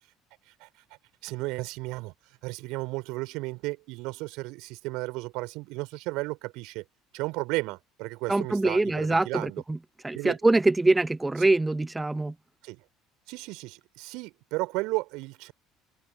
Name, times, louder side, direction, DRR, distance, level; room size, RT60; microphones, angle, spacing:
voice 1, 1.2-2.1 2.4-6.8 7.1-9.6 10.1-10.4 12.6-12.8 13.3-15.5, right 23 dB, 60° right, 3.6 m, -34 dB
voice 2, 8.3-9.8 10.0-12.3, right 2 dB, 15° right, 0.6 m, -24 dB
open air
figure-of-eight pair, 60°, 0 cm